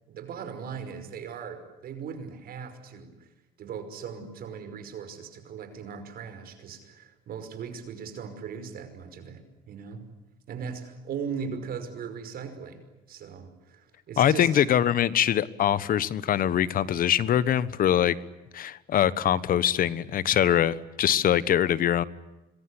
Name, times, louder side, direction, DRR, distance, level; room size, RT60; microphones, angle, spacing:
voice 1, 0.1-3.3 3.6-10.0 10.5-12.8 13.1-14.5, right 6 dB, 60° right, 9 dB, 5.5 m, -38 dB
voice 2, 14.2-18.1 18.5-22.0, left 10 dB, 55° left, 17 dB, 1.3 m, -23 dB
26.0 x 22.0 x 9.9 m, 0.99 s
cardioid pair, 110°, 17 cm